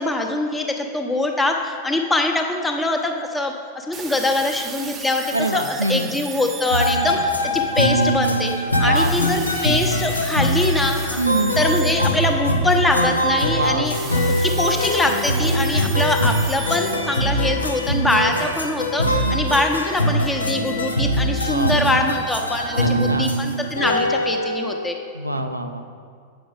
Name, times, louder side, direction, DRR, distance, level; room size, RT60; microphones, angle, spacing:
voice 1, 0.0-11.2 11.6-13.9 14.4-25.0, left 2 dB, 10° left, 3 dB, 0.8 m, -23 dB
sound 1, 2.8-3.2 3.9-8.1 9.0-13.1 13.9-17.1, right 6 dB, 25° right, 0.6 m, -36 dB
voice 2, 5.3-6.1 8.8-9.1 11.2-11.5 13.5-13.9 19.3-19.4 21.4-21.8 22.8-23.3 25.1-25.9, right 2 dB, 85° right, 7 dB, 0.4 m, -24 dB
sound 2, 6.7-24.8, equal, 80° left, 0.6 m, -22 dB
7.9 x 6.0 x 4.9 m, 2.1 s
figure-of-eight pair, 90°, 0 cm